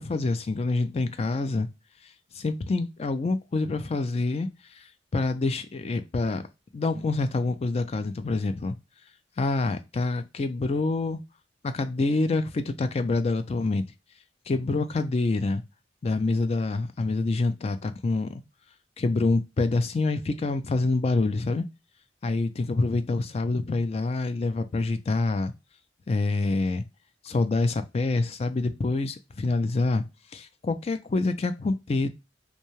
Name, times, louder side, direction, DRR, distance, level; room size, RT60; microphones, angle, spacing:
voice 1, 0.0-1.7 2.4-4.5 5.1-6.4 6.7-8.7 9.4-11.2 11.6-13.8 14.5-15.6 16.0-18.4 19.0-21.6 22.2-25.5 26.1-26.8 27.2-30.0 30.3-32.1, left 3 dB, 35° left, 0.3 m, -26 dB
2.7 x 2.2 x 2.9 m
head